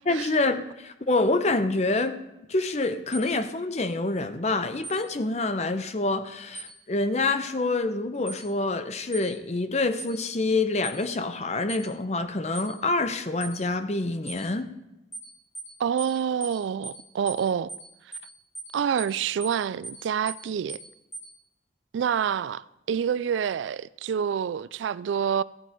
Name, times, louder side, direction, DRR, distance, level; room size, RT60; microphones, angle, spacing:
voice 1, 0.1-2.2 2.5-14.7, left 2 dB, 35° left, 0.7 m, -26 dB
sound 1, 3.1-3.3 4.8-5.0 6.5-6.7 8.3-8.4 9.1-9.3 10.0-10.1 10.8-11.0 11.7-11.9 12.5-12.7 13.4-13.6 14.3-14.4 15.1-15.3 15.5-15.7 16.0-16.1 16.4-16.6 16.8-17.0 17.3-17.4 17.7-17.9 18.1-18.3 18.5-18.7 19.0-19.1 19.4-19.6 19.8-20.0 20.3-20.4 20.7-20.9 21.1-21.3, right 3 dB, 15° left, 1.9 m, -38 dB
voice 2, 15.8-17.7 18.7-20.8 21.9-25.4, right 7 dB, 85° right, 0.3 m, -27 dB
14.0 x 8.9 x 4.5 m
head